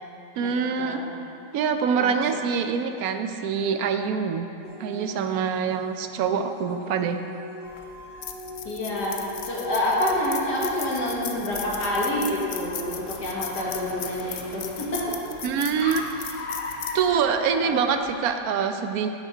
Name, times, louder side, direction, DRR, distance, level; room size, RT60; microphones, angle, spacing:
voice 1, 0.4-1.0 1.5-4.5 4.8-7.2 15.4-16.0 16.9-19.3, right 6 dB, 70° right, 7 dB, 1.0 m, -25 dB
sound 1, 4.6-15.1, left 2 dB, 30° left, 0.7 m, -41 dB
sound 2, 7.7-18.1, left 8 dB, 90° left, 0.5 m, -38 dB
Car, 8.5-18.4, left 2 dB, 55° left, 1.0 m, -40 dB
voice 2, 8.6-15.2 15.9-16.0, left 1 dB, 70° left, -5 dB, 2.1 m, -27 dB
9.3 x 7.3 x 5.0 m, 2.7 s
omnidirectional pair, 1.8 m